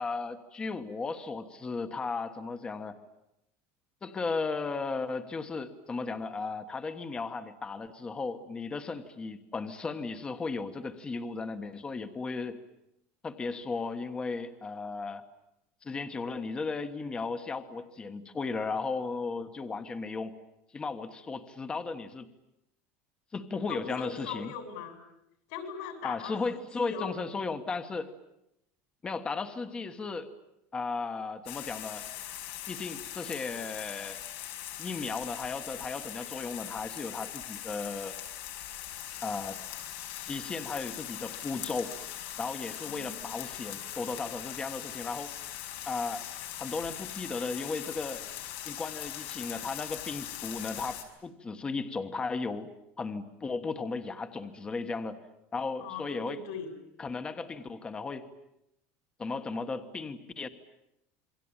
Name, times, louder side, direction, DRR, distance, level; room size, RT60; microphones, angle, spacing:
voice 1, 0.0-3.0 4.0-12.6 13.2-15.2 15.8-20.3 20.7-22.3 23.3-24.5 26.0-28.1 29.0-30.3 30.7-32.1 32.7-34.2 34.8-38.2 39.2-39.6 40.2-41.9 42.4-45.3 45.9-46.2 46.5-48.2 48.6-52.7 53.0-55.2 55.5-56.4 57.0-58.3 59.2-60.5, left 4 dB, 15° left, 9 dB, 1.4 m, -35 dB
voice 2, 23.7-25.0 25.5-27.1 42.8-43.3 55.8-56.7, left 6 dB, 70° left, 7 dB, 7.8 m, -40 dB
sound 1, 31.5-51.0, left 12 dB, 90° left, 5.2 m, -41 dB
28.5 x 23.0 x 8.9 m, 0.84 s
cardioid pair, 170°, 6 cm